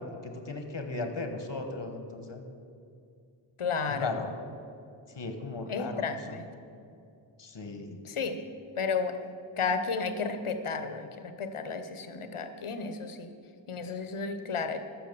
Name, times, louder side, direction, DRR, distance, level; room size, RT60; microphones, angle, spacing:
voice 1, 0.0-2.4 3.9-4.3 5.1-6.4 7.4-8.0, left 3 dB, 60° left, 6 dB, 1.5 m, -37 dB
voice 2, 3.6-4.1 5.7-6.4 8.0-8.4 8.8-9.2 9.6-13.3 13.7-14.8, left 5 dB, 80° left, 8 dB, 0.9 m, -32 dB
13.5 x 6.3 x 6.8 m, 2.5 s
wide cardioid pair, 50°, 49 cm